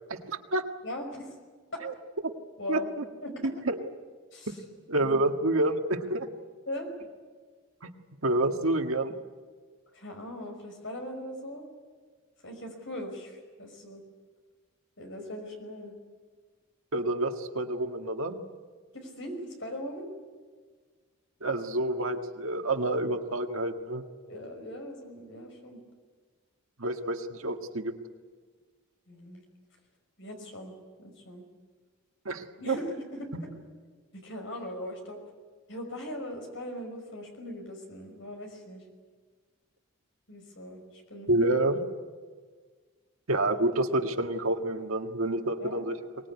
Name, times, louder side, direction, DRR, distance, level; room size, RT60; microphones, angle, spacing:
voice 1, 0.1-0.6 1.8-1.9 2.7-2.8 3.4-3.9 4.5-4.6 4.9-6.3 7.8-7.9 8.2-9.2 16.9-18.4 21.4-24.0 26.8-27.9 32.3-32.8 41.3-41.8 43.3-46.0, right 2 dB, 85° right, 5 dB, 1.8 m, -28 dB
voice 2, 0.8-1.4 2.6-2.9 3.2-3.5 4.3-4.6 5.0-5.2 6.7-6.9 9.9-11.7 12.4-14.0 15.0-15.9 18.9-20.1 24.3-25.8 29.1-29.4 30.2-30.7 31.0-31.4 32.6-33.3 34.1-35.2 35.7-38.8 40.3-41.5 45.6-45.8, left 1 dB, 65° left, 3 dB, 5.5 m, -40 dB
24.0 x 19.5 x 9.7 m, 1.5 s
head